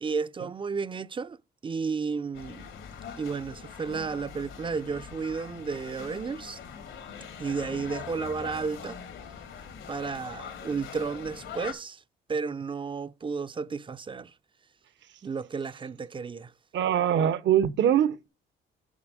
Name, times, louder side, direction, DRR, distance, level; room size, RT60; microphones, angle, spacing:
voice 1, 0.0-1.4 1.6-2.6 3.2-6.6 7.4-9.0 9.9-12.0 12.3-14.3 15.2-16.5, right 5 dB, 25° right, 0.4 m, -32 dB
sound 1, 2.3-11.7, left 7 dB, 85° left, 2.4 m, -42 dB
voice 2, 16.7-18.3, right 10 dB, 70° right, 0.8 m, -23 dB
7.3 x 5.8 x 6.1 m
cardioid pair, 90°, 20 cm